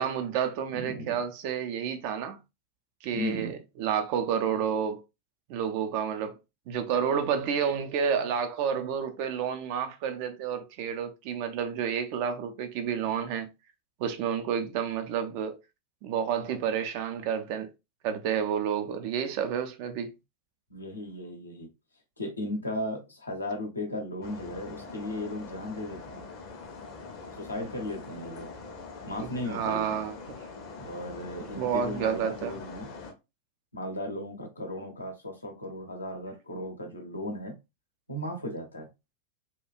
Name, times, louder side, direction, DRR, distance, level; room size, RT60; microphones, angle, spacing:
voice 1, 0.0-2.4 3.0-5.0 5.5-6.4 6.7-13.5 14.0-15.6 16.0-17.7 18.0-20.1 29.2-30.2 31.5-32.6, right 8 dB, 45° right, 0.5 m, -30 dB
voice 2, 0.7-1.2 3.1-3.6 20.7-21.7 22.2-26.2 27.4-28.5 29.0-30.0 30.8-32.9 33.7-37.6 38.1-38.9, left 1 dB, 80° left, 0.8 m, -36 dB
sound 1, 24.2-33.1, left 4 dB, 40° left, 0.7 m, -43 dB
3.0 x 2.3 x 2.3 m
figure-of-eight pair, 90°, 0 cm